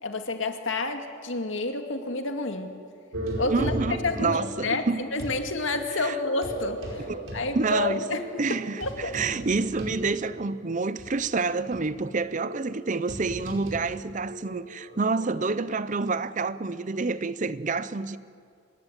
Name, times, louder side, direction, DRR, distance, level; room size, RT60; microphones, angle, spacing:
voice 1, 0.0-2.7 3.4-3.7 4.0-7.1 7.3-8.3 8.8-9.2, left 2 dB, 65° left, 2.2 m, -29 dB
sound 1, 3.1-5.4 6.2-10.6 11.0-11.1 11.7-15.3, right 1 dB, 75° right, 5.1 m, -37 dB
voice 2, 3.5-5.0 6.0-6.1 7.0-8.0 8.4-18.2, right 3 dB, 35° right, 0.6 m, -28 dB
25.0 x 20.5 x 8.9 m
head